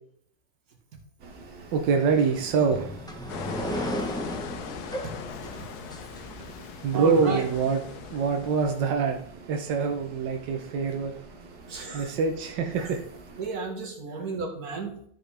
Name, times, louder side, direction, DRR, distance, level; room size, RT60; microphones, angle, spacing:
sound 1, 1.2-13.5, right 3 dB, 75° right, 1.8 m, -47 dB
voice 1, 1.7-3.0 6.8-7.8 8.1-9.2 9.5-11.1 11.9-13.0, right 5 dB, 90° right, 3 dB, 1.5 m, -25 dB
sound 2, 2.1-6.8, equal, 5° left, 0.3 m, -35 dB
sound 3, 3.3-8.9, left 9 dB, 70° left, 1.1 m, -40 dB
voice 2, 6.9-7.4 11.7-12.1 12.8-12.9 13.4-15.0, right 4 dB, 60° right, 0 dB, 2.1 m, -33 dB
12.5 x 5.3 x 3.4 m, 0.65 s
omnidirectional pair, 1.9 m